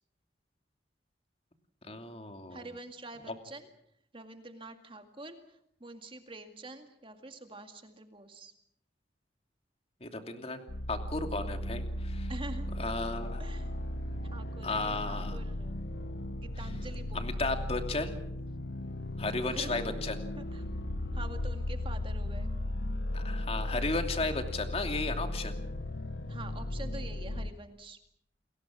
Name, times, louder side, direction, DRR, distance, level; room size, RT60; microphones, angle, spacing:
voice 1, 1.9-2.6 3.3-3.4 10.0-10.6 10.9-12.3 12.8-13.4 14.6-15.4 17.1-18.2 19.2-20.2 23.1-25.6, left 3 dB, 35° left, 5 dB, 2.7 m, -34 dB
voice 2, 2.5-3.7 4.1-5.4 5.8-8.5 12.3-12.7 13.4-13.7 14.2-15.7 16.4-17.2 19.5-20.0 20.4-20.7 21.1-22.5 26.3-28.0, right 2 dB, 30° right, 6 dB, 2.1 m, -46 dB
sound 1, 10.7-27.5, left 1 dB, 65° left, 1.1 m, -36 dB
29.5 x 21.5 x 6.2 m, 0.74 s
head